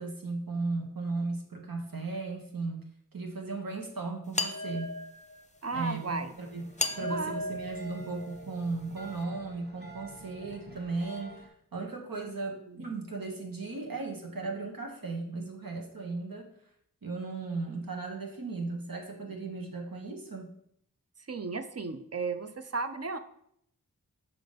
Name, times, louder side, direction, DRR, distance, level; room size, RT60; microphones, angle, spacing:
voice 1, 0.0-5.0 5.7-16.5 17.0-20.5, right 3 dB, 85° right, 2 dB, 1.2 m, -36 dB
sound 1, 4.3-5.4 6.8-8.7, left 2 dB, 20° left, 0.6 m, -35 dB
sound 2, 5.6-11.5, right 2 dB, 30° right, 1.1 m, -51 dB
voice 2, 5.6-6.3 6.9-7.3 12.7-12.8 21.3-23.2, right 4 dB, 45° right, 9 dB, 0.6 m, -34 dB
5.8 x 3.7 x 5.1 m, 0.70 s
wide cardioid pair, 60°, 34 cm